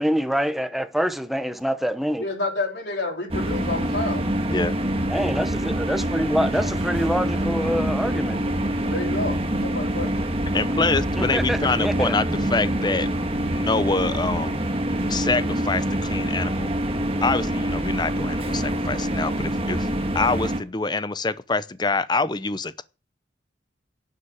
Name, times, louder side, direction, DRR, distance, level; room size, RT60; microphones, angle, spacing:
voice 1, 0.0-2.2 5.1-8.4 11.2-12.2, equal, ahead, 0.9 m, -25 dB
voice 2, 2.2-4.3 8.8-9.4 9.6-10.2, left 2 dB, 65° left, 4.0 m, -29 dB
sound 1, 3.3-20.6, right 1 dB, 30° right, 1.6 m, -25 dB
voice 3, 10.5-13.1 13.5-14.6 15.1-16.7 17.2-19.9 20.1-22.8, left 3 dB, 25° left, 0.7 m, -25 dB
11.5 x 7.1 x 8.7 m
head